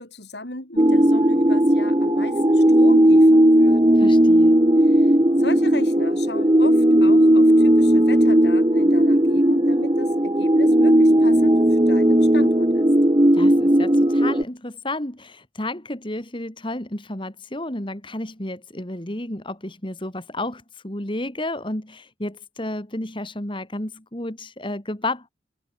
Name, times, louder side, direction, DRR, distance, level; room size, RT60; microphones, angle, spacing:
voice 1, 0.0-4.0 4.8-12.9, left 2 dB, 65° left, 6.5 m, -36 dB
sound 1, 0.8-14.4, right 1 dB, 25° right, 1.3 m, -16 dB
voice 2, 3.9-4.6 13.3-25.3, left 1 dB, 25° left, 2.7 m, -31 dB
head